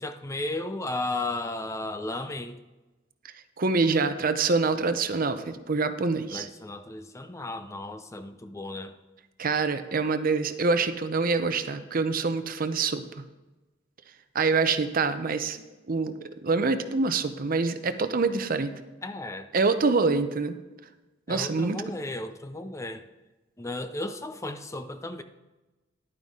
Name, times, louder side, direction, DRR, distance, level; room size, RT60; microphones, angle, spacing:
voice 1, 0.0-2.6 6.3-8.9 19.0-19.5 21.3-23.0 23.6-25.2, left 2 dB, 15° left, 9 dB, 0.5 m, -34 dB
voice 2, 3.6-6.5 9.4-13.2 14.3-15.6 15.9-18.7 19.5-20.6 21.3-21.8, right 4 dB, 45° right, 10 dB, 0.7 m, -25 dB
11.0 x 9.3 x 3.7 m, 1.1 s
head